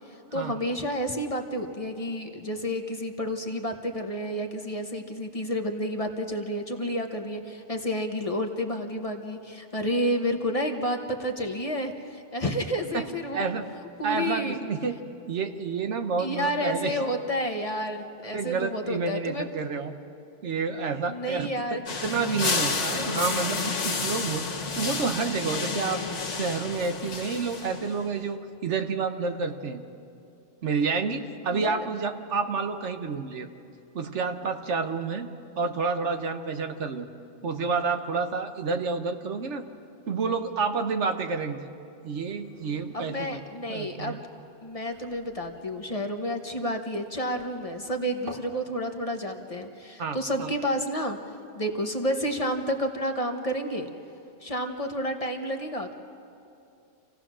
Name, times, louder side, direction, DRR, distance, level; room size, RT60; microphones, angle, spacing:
voice 1, 0.1-13.5 14.0-14.6 16.2-19.5 21.0-21.8 31.5-31.8 42.9-44.2 44.6-51.2 51.5-53.9 54.4-55.9, equal, 30° left, 4 dB, 1.2 m, -30 dB
voice 2, 13.3-13.6 14.0-15.0 15.3-17.0 18.3-19.9 20.4-24.5 24.7-26.0 26.4-29.8 30.6-33.5 33.9-35.3 35.6-37.1 37.4-39.6 40.1-41.7 42.0-43.4 43.7-44.2 50.0-50.5, right 5 dB, 70° right, 7 dB, 1.3 m, -29 dB
sound 1, 21.9-28.1, left 4 dB, 75° left, 1.7 m, -30 dB
sound 2, 42.1-48.6, right 1 dB, 50° right, 1.7 m, -50 dB
27.5 x 16.5 x 6.2 m, 2.7 s
omnidirectional pair, 1.2 m